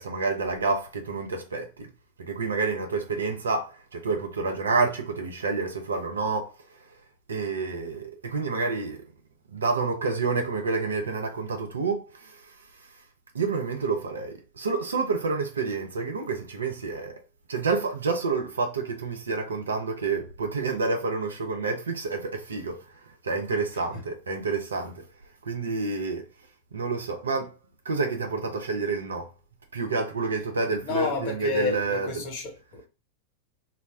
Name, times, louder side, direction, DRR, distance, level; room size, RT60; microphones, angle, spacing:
voice 1, 0.0-1.9 2.2-6.5 7.3-9.0 9.5-12.4 13.3-17.2 17.5-22.8 23.2-25.0 25.4-26.3 26.7-27.5 27.9-29.3 29.7-32.2, right 4 dB, 70° right, 0.5 m, -28 dB
voice 2, 30.8-32.9, left 4 dB, 45° left, 0.9 m, -30 dB
2.1 x 2.1 x 3.4 m
figure-of-eight pair, 90°, 0 cm